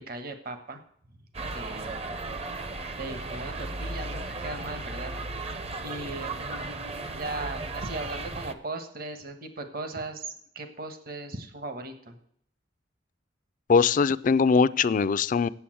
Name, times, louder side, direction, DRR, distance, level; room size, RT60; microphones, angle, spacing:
voice 1, 0.1-0.8 1.5-2.0 3.0-5.1 5.8-6.3 7.1-12.2, right 2 dB, 55° right, 8 dB, 1.3 m, -38 dB
sound 1, 1.3-8.5, right 2 dB, 35° right, 0.7 m, -35 dB
voice 2, 13.7-15.5, left 5 dB, 45° left, 16 dB, 0.4 m, -21 dB
8.5 x 7.8 x 7.6 m, 0.65 s
head